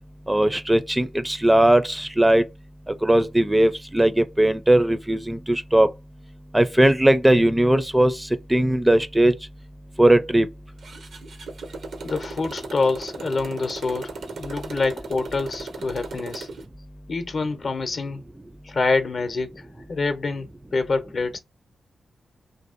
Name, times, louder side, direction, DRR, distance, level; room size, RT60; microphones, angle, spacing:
voice 1, 0.3-2.5 2.9-5.9 6.5-9.3 10.0-10.5, right 1 dB, 15° right, 0.4 m, -19 dB
Motorcycle, 10.8-16.7, right 3 dB, 75° right, 0.6 m, -37 dB
voice 2, 12.0-16.5 17.1-18.2 18.6-21.4, left 3 dB, 60° left, 0.6 m, -26 dB
2.6 x 2.4 x 2.5 m
supercardioid pair, 40°, 0 cm